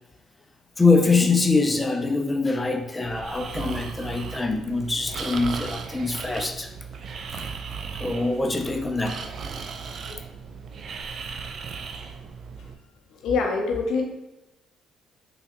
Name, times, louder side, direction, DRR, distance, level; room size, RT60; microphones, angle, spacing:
voice 1, 0.8-6.7 8.0-9.6 10.1-10.2, left 3 dB, 20° left, 5 dB, 0.4 m, -24 dB
Breathing, 3.0-12.7, right 5 dB, 55° right, 0.3 m, -36 dB
voice 2, 13.1-14.0, left 4 dB, 70° left, 3 dB, 0.6 m, -25 dB
3.2 x 2.7 x 2.9 m, 0.99 s
hypercardioid pair, 50°, 0 cm